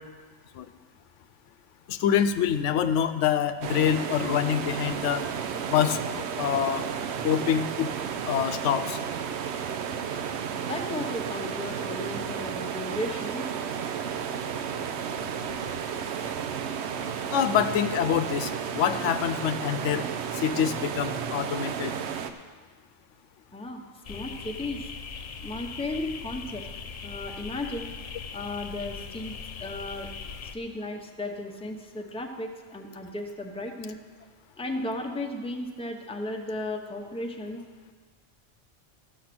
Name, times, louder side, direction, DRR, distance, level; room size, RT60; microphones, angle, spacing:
voice 1, 1.9-5.2 5.6-6.0 6.4-6.9 7.2-7.9 8.3-9.0 17.3-20.1 20.3-21.9, left 9 dB, 90° left, 10 dB, 0.9 m, -25 dB
sound 1, 3.6-22.3, right 7 dB, 70° right, 0.9 m, -33 dB
voice 2, 10.6-13.5 23.5-23.8 24.1-24.8 25.4-26.6 27.0-27.9 28.3-29.3 29.6-30.1 30.5-34.0 34.6-37.6, left 2 dB, 5° left, 2 dB, 0.7 m, -35 dB
sound 2, 24.0-30.6, left 5 dB, 45° left, 0.5 m, -40 dB
13.5 x 6.6 x 6.0 m, 1.5 s
omnidirectional pair, 1.2 m